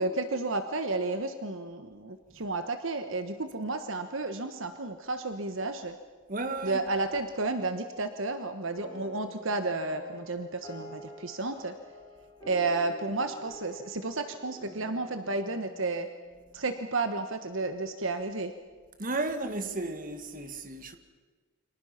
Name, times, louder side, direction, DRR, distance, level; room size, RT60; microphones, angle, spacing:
voice 1, 0.0-6.0 6.6-11.8 12.5-16.1 16.5-18.5, right 3 dB, 60° right, 1.2 m, -32 dB
voice 2, 6.3-6.8 19.0-21.0, right 2 dB, 40° right, 1.8 m, -33 dB
sound 1, 8.7-17.3, equal, 15° left, 6.0 m, -49 dB
29.5 x 25.0 x 5.9 m
head